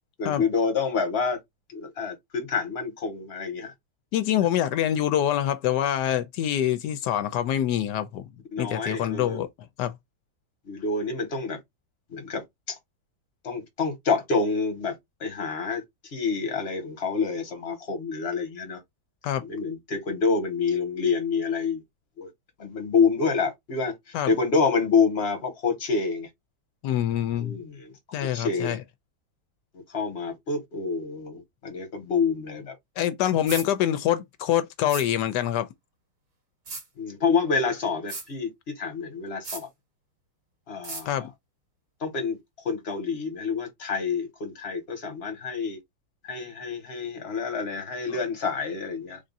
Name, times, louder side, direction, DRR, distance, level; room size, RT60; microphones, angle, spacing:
voice 1, 0.2-1.4 1.7-3.7 8.5-9.4 10.7-11.6 12.1-12.7 13.4-15.8 16.1-18.8 19.4-21.8 22.2-22.3 22.6-26.3 27.4-27.9 28.2-28.8 29.7-32.7 37.0-39.7 40.7-41.3 42.0-42.4 42.6-45.8 46.2-49.2, left 5 dB, 40° left, 1.5 m, -27 dB
voice 2, 4.1-8.2 8.6-9.5 9.8-9.9 19.2-19.4 24.1-24.4 26.8-27.6 28.1-28.8 33.0-35.7 41.1-41.3, left 11 dB, 85° left, 1.2 m, -25 dB
sound 1, 33.5-33.7 34.9-35.1 36.7-36.8 38.1-38.3 39.4-39.6 40.8-41.0, right 3 dB, 60° right, 2.0 m, -35 dB
3.7 x 2.6 x 3.9 m
omnidirectional pair, 1.8 m